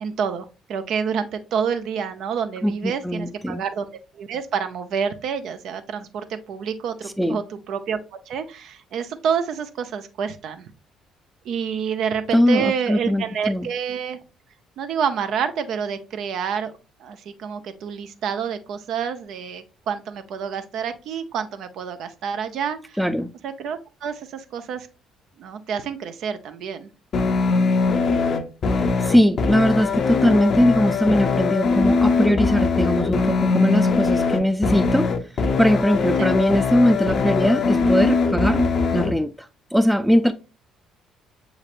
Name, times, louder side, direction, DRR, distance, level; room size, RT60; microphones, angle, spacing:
voice 1, 0.0-3.9 4.1-8.0 8.3-10.6 11.5-14.2 14.8-16.7 17.0-23.0 23.4-24.9 25.4-26.9 36.2-36.3, right 7 dB, 65° right, 0.5 m, -28 dB
voice 2, 2.6-3.6 7.2-7.4 12.3-13.7 23.0-23.3 28.7-35.1 35.6-40.3, equal, ahead, 0.4 m, -20 dB
sound 1, 27.1-39.1, left 4 dB, 55° left, 0.5 m, -21 dB
6.5 x 2.9 x 2.5 m
hypercardioid pair, 50°, 0 cm